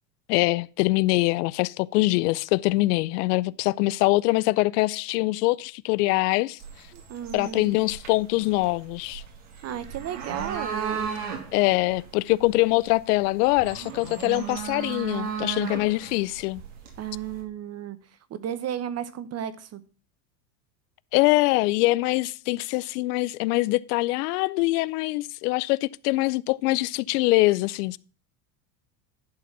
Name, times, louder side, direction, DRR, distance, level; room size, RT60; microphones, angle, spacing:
voice 1, 0.3-6.6 7.3-9.2 11.5-16.6 21.1-28.0, left 21 dB, 70° left, 0.5 m, -23 dB
sound 1, 6.6-17.4, right 7 dB, 65° right, 2.8 m, -36 dB
voice 2, 6.9-7.7 9.6-11.2 17.0-18.0 18.3-19.8, right 9 dB, 30° right, 0.8 m, -34 dB
11.5 x 4.1 x 5.9 m
supercardioid pair, 115°, 48 cm